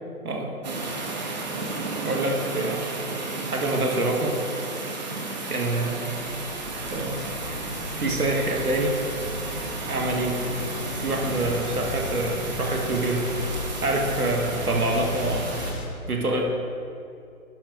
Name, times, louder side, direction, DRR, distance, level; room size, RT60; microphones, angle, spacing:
voice 1, 0.2-0.6 2.0-2.8 3.5-4.4 5.5-6.1 6.9-7.2 8.0-9.0 9.9-10.4 11.0-13.3 13.8-15.5 16.1-16.5, right 2 dB, 85° right, 1 dB, 1.7 m, -26 dB
sound 1, 0.6-15.7, right 3 dB, 30° right, 1.2 m, -33 dB
sound 2, 6.2-15.9, left 1 dB, 45° left, 1.8 m, -35 dB
11.5 x 10.0 x 3.1 m, 2.6 s
figure-of-eight pair, 150°, 44 cm